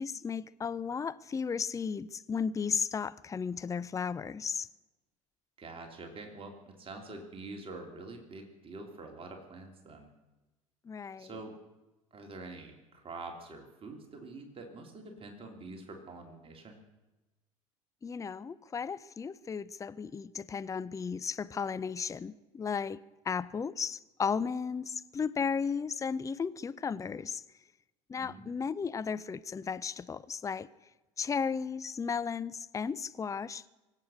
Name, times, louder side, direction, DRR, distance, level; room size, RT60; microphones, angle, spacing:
voice 1, 0.0-4.7 10.8-11.3 18.0-23.0 23.2-27.4 28.1-30.7 31.2-33.6, left 6 dB, 20° left, 0.5 m, -34 dB
voice 2, 5.6-10.1 11.2-11.5 12.1-16.8 28.2-28.5, right 3 dB, 30° right, 3.1 m, -46 dB
25.0 x 8.5 x 6.4 m
hypercardioid pair, 70°, 17 cm